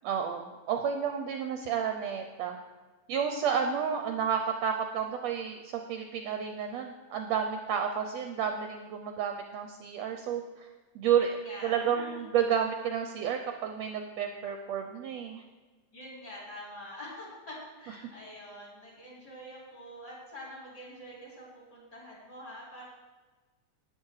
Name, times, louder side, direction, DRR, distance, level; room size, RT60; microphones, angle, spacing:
voice 1, 0.0-2.6 3.1-10.7 10.9-11.3 11.6-15.4, right 8 dB, 75° right, 5 dB, 1.7 m, -31 dB
voice 2, 11.1-12.2 15.9-22.8, equal, 30° left, -6 dB, 4.5 m, -45 dB
12.0 x 9.2 x 4.8 m, 1.3 s
omnidirectional pair, 3.5 m